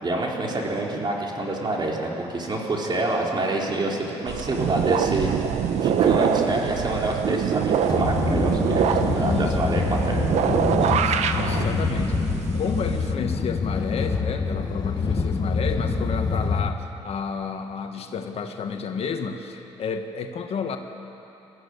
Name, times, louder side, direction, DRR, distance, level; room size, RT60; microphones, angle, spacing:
voice 1, 0.0-5.5 5.8-10.6, right 2 dB, 40° right, -2 dB, 4.2 m, -27 dB
sound 1, 4.3-13.1, right 8 dB, 75° right, 1.1 m, -24 dB
sound 2, 7.9-16.7, left 4 dB, 35° left, 1.6 m, -26 dB
voice 2, 9.1-9.6 10.8-20.8, left 5 dB, 60° left, 5 dB, 1.6 m, -31 dB
21.0 x 14.0 x 9.8 m, 2.9 s
cardioid pair, 75°, 12 cm